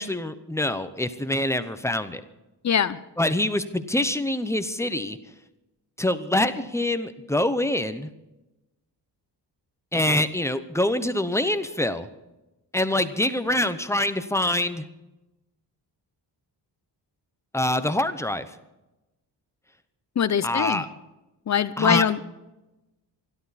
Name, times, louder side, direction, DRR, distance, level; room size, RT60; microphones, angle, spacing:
voice 1, 0.0-2.2 3.2-5.2 6.0-8.1 9.9-12.1 12.7-14.9 17.5-18.5 20.4-20.9 21.8-22.1, left 1 dB, 5° left, 10 dB, 0.8 m, -25 dB
voice 2, 2.6-3.0 20.2-20.8 21.5-22.3, left 8 dB, 40° left, 14 dB, 0.8 m, -23 dB
26.5 x 12.0 x 4.2 m, 1.0 s
wide cardioid pair, 150°, 42 cm